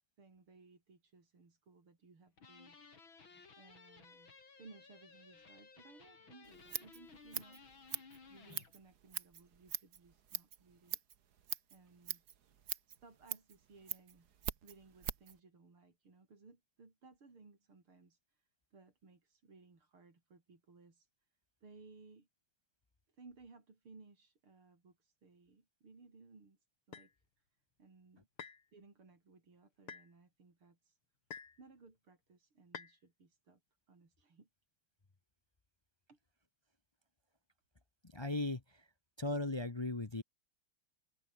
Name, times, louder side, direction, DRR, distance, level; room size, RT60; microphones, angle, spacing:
voice 1, 0.2-3.0 3.6-7.7 8.3-11.0 11.7-12.2 12.9-14.3 14.6-21.1 21.6-22.3 23.1-26.6 26.9-27.5 27.8-28.3 28.7-31.0 31.6-33.6 33.9-34.5 36.1-36.2, right 4 dB, 80° right, 5.6 m, -61 dB
sound 1, 2.4-8.7, left 4 dB, 65° left, 4.3 m, -58 dB
Scissors, 6.4-15.4, right 9 dB, 55° right, 1.7 m, -44 dB
sound 2, 26.9-27.1 28.4-28.6 29.9-30.1 31.3-31.6 32.7-33.0, left 6 dB, 90° left, 3.4 m, -48 dB
voice 2, 38.0-38.8 39.2-40.2, left 2 dB, 35° left, 0.4 m, -37 dB
open air
omnidirectional pair, 2.3 m